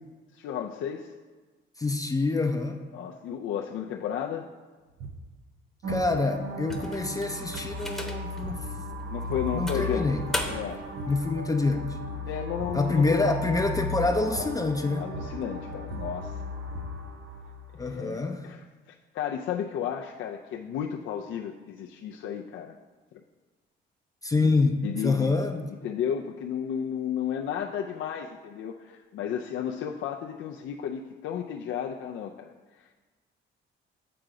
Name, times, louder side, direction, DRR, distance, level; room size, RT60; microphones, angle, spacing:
voice 1, 0.3-1.1 2.9-4.5 9.1-10.1 10.5-10.8 12.3-13.3 14.9-16.3 17.8-22.8 24.4-25.4 25.8-33.0, left 9 dB, 75° left, 1 dB, 0.4 m, -33 dB
voice 2, 1.8-2.8 5.9-8.6 9.5-10.2 11.1-11.9 12.7-15.0 17.8-18.4 24.2-25.6, left 3 dB, 20° left, 4 dB, 0.5 m, -26 dB
sound 1, 4.9-5.3 5.9-6.2 6.7-7.2 7.5-8.0 8.4-8.7 9.1-9.7 10.1-10.5 10.7-11.3 11.7-12.1 12.6-12.9 13.5-13.9 14.4-14.7 15.0-17.1, right 3 dB, 90° right, 0.6 m, -41 dB
sound 2, 5.8-17.8, left 2 dB, 70° right, 1.2 m, -36 dB
sound 3, 6.7-8.4 8.9-9.1 9.7-10.9, left 1 dB, ahead, 0.9 m, -36 dB
7.7 x 3.9 x 4.7 m, 1.3 s
cardioid pair, 90°, 20 cm